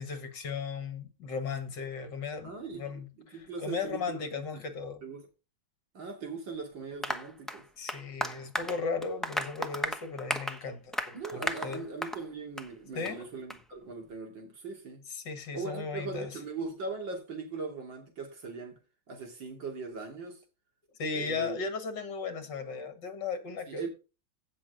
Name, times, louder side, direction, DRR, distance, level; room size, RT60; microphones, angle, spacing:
voice 1, 0.0-5.0 7.8-11.8 12.9-13.3 15.1-16.4 21.0-23.8, left 5 dB, 60° left, 2.1 m, -36 dB
voice 2, 2.4-4.4 5.0-5.3 5.9-7.6 11.1-15.0 15.5-18.8 19.1-20.4 21.1-21.6 23.7-23.9, right 4 dB, 65° right, 3.6 m, -40 dB
Applause, 7.0-12.2 12.6-12.7 13.0-13.1 13.5-13.6, equal, ahead, 0.4 m, -35 dB
16.0 x 6.0 x 3.8 m
omnidirectional pair, 2.2 m